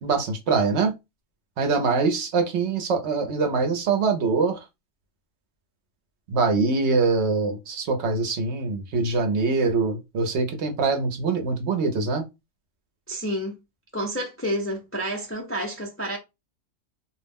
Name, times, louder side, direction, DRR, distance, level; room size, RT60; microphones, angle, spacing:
voice 1, 0.0-0.9 1.6-4.6 6.3-12.2, right 4 dB, 65° right, 0.8 m, -23 dB
voice 2, 13.1-13.5 13.9-16.2, equal, 20° left, 0.3 m, -29 dB
2.4 x 2.0 x 3.3 m
omnidirectional pair, 1.3 m